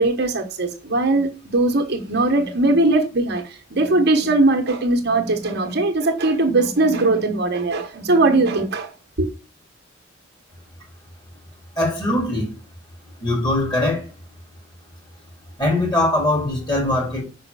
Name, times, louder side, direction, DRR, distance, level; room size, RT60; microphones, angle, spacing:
voice 1, 0.0-8.9 9.2-9.3, right 2 dB, 55° right, 1.3 m, -20 dB
voice 2, 11.8-12.6 13.2-14.1 15.6-17.2, left 1 dB, 25° left, 3.7 m, -21 dB
5.9 x 5.6 x 6.8 m
head